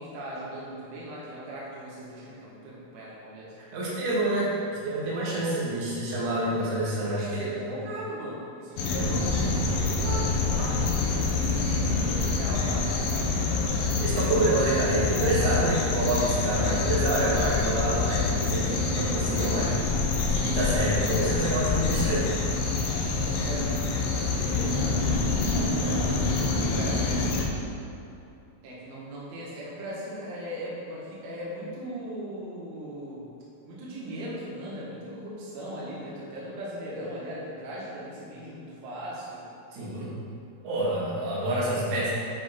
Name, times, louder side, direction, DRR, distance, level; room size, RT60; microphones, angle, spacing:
voice 1, 0.0-3.6 7.2-13.4 23.0-27.4 28.6-33.2 33.7-39.5, equal, 85° right, -7 dB, 3.9 m, -38 dB
voice 2, 3.6-7.5 10.7-10.8 14.0-19.9 20.3-22.3 39.7-40.1 40.6-42.1, right 1 dB, 55° right, -8 dB, 2.9 m, -27 dB
sound 1, 8.8-27.5, left 3 dB, 75° left, 2.5 m, -26 dB
9.9 x 5.2 x 4.2 m, 2.7 s
omnidirectional pair, 5.3 m